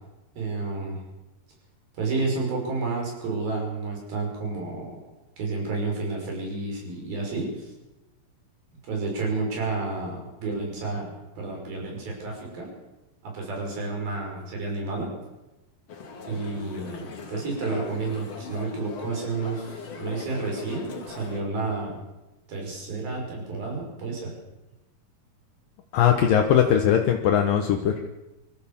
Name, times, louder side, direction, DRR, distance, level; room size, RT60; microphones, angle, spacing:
voice 1, 0.4-1.0 2.0-5.0 5.4-7.7 8.9-11.1 11.4-12.7 13.2-15.1 16.3-22.0 22.5-24.3, right 3 dB, 65° right, 0 dB, 7.8 m, -30 dB
sound 1, 15.9-21.4, left 4 dB, 45° left, 3.1 m, -39 dB
voice 2, 25.9-28.1, left 9 dB, 70° left, 4 dB, 2.7 m, -20 dB
25.5 x 15.0 x 7.3 m, 1.0 s
omnidirectional pair, 4.4 m